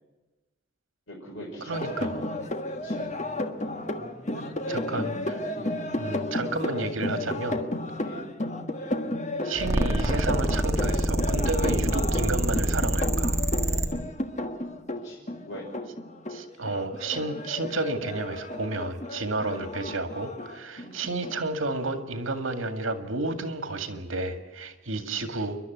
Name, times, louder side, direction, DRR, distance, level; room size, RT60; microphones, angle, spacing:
voice 1, 1.1-3.0 4.7-4.8 5.5-5.8 8.0-8.3 15.0-15.6 19.4-19.8 20.8-21.0 25.0-25.4, equal, 75° left, -5 dB, 5.6 m, -43 dB
voice 2, 1.6-2.1 4.7-5.4 6.0-7.6 9.4-13.4 16.3-25.6, right 2 dB, 80° right, 8 dB, 2.1 m, -31 dB
sound 1, 1.7-21.4, left 1 dB, 35° left, 1.5 m, -33 dB
sound 2, 9.6-13.9, right 1 dB, 15° right, 1.5 m, -26 dB
29.0 x 12.0 x 9.3 m, 1.2 s
head